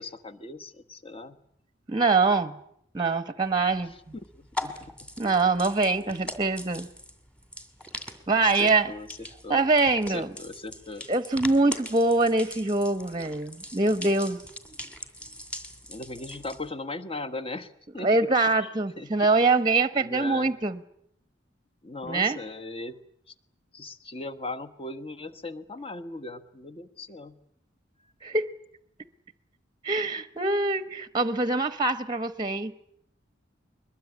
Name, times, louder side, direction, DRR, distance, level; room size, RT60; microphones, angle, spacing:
voice 1, 0.0-1.4 3.9-4.0 4.3-5.1 6.1-6.4 8.4-9.6 10.1-11.1 15.9-18.3 18.6-19.3 20.0-20.5 21.8-23.0 23.3-23.4 23.7-27.4, left 2 dB, 30° left, 11 dB, 1.4 m, -39 dB
voice 2, 1.9-2.6 2.9-3.9 5.2-6.9 8.3-8.9 9.5-10.3 11.1-14.4 18.0-20.8 22.0-22.4 28.2-28.5 29.8-32.7, right 3 dB, 25° right, 13 dB, 0.9 m, -24 dB
sound 1, 3.4-16.7, left 1 dB, 5° left, 2.3 m, -41 dB
22.5 x 21.0 x 9.8 m, 0.72 s
head